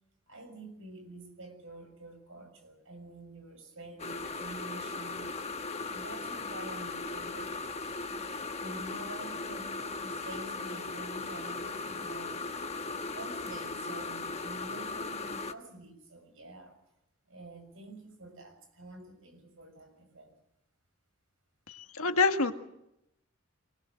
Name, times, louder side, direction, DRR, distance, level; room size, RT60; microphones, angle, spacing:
voice 1, 0.3-5.3 5.9-7.6 8.6-12.5 13.1-16.8 17.3-20.3, right 2 dB, 65° right, 6 dB, 6.7 m, -48 dB
sound 1, 4.0-15.5, left 3 dB, 30° left, 1.2 m, -38 dB
voice 2, 21.9-22.5, left 4 dB, 85° left, 6 dB, 1.9 m, -25 dB
24.0 x 19.5 x 7.8 m, 0.81 s
head